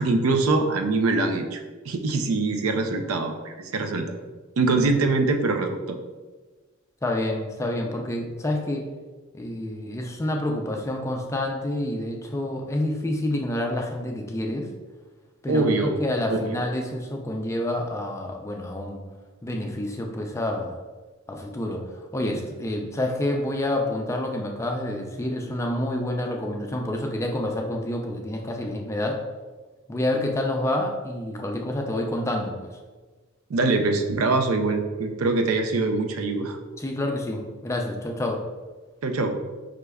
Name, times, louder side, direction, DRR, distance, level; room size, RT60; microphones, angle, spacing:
voice 1, 0.0-4.1 4.6-6.0 15.5-16.0 16.3-16.5 33.5-36.6 39.0-39.4, right 3 dB, 80° right, 5 dB, 0.4 m, -23 dB
voice 2, 7.0-8.9 9.3-14.7 15.4-19.0 19.4-20.8 21.3-29.2 29.9-32.6 36.8-38.4, left 1 dB, 15° left, 2 dB, 0.3 m, -28 dB
5.0 x 3.3 x 2.3 m, 1.3 s
head